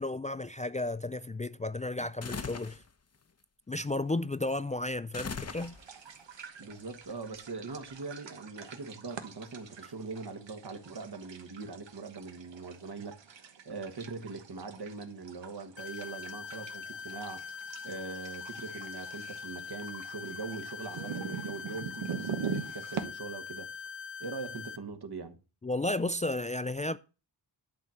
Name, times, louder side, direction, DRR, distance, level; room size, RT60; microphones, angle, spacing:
voice 1, 0.0-2.8 3.7-5.8 25.6-27.0, left 2 dB, 20° left, 0.4 m, -33 dB
sound 1, 2.2-2.8 5.1-6.1, left 5 dB, 35° left, 0.9 m, -39 dB
sound 2, 5.6-23.0, right 6 dB, 90° right, 1.3 m, -43 dB
voice 2, 6.6-17.5 17.8-23.7 24.2-25.4, right 4 dB, 60° right, 1.5 m, -42 dB
sound 3, 15.8-24.8, left 6 dB, 85° left, 0.9 m, -43 dB
11.5 x 4.3 x 7.6 m
wide cardioid pair, 80°, 43 cm